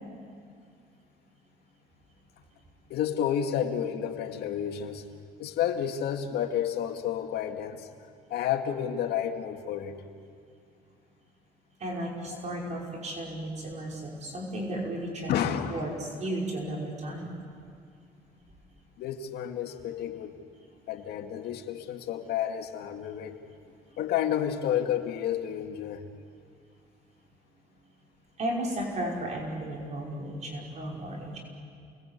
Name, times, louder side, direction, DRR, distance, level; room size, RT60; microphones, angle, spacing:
voice 1, 2.9-5.1 5.4-7.9 8.3-10.0 15.3-15.9 19.0-20.4 20.9-23.4 24.0-26.0, left 9 dB, 75° left, 4 dB, 2.3 m, -30 dB
voice 2, 11.8-15.4 15.7-17.4 28.4-31.4, right 1 dB, 45° right, -1 dB, 5.5 m, -34 dB
29.5 x 21.0 x 8.4 m, 2.3 s
cardioid pair, 110°, 17 cm